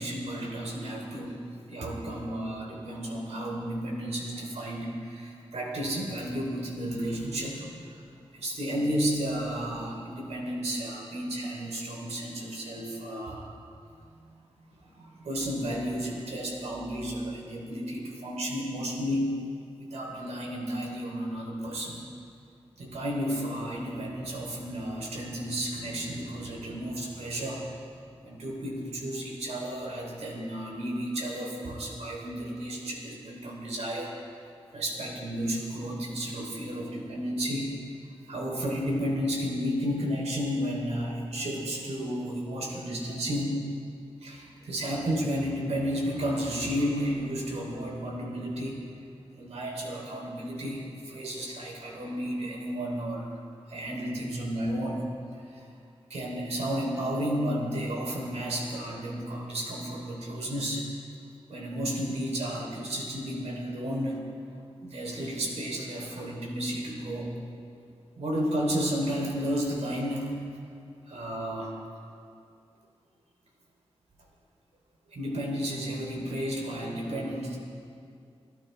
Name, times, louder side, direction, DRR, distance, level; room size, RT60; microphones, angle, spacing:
voice 1, 0.0-1.4 1.7-8.0 8.3-13.4 14.8-19.5 19.8-22.0 22.8-27.7 28.2-34.1 34.7-37.8 38.3-43.7 44.2-48.8 49.3-53.4 53.7-55.6 56.1-60.9 61.5-64.3 64.8-67.4 68.2-70.4 71.1-71.8 75.1-77.6, equal, 90° right, -1 dB, 3.5 m, -32 dB
26.5 x 15.0 x 3.4 m, 2.4 s
wide cardioid pair, 105°, 11 cm